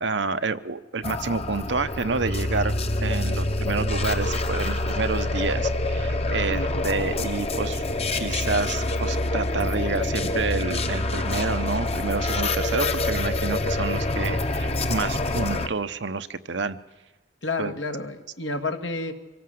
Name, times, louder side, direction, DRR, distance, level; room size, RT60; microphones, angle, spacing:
voice 1, 0.0-2.7 3.0-7.8 8.2-16.8 17.6-17.7, right 4 dB, 70° right, 10 dB, 0.9 m, -29 dB
sound 1, 1.0-15.7, left 2 dB, 35° left, 1.1 m, -26 dB
voice 2, 6.5-7.1 17.4-19.1, left 2 dB, 75° left, 6 dB, 1.9 m, -31 dB
24.5 x 17.5 x 7.8 m, 1.2 s
head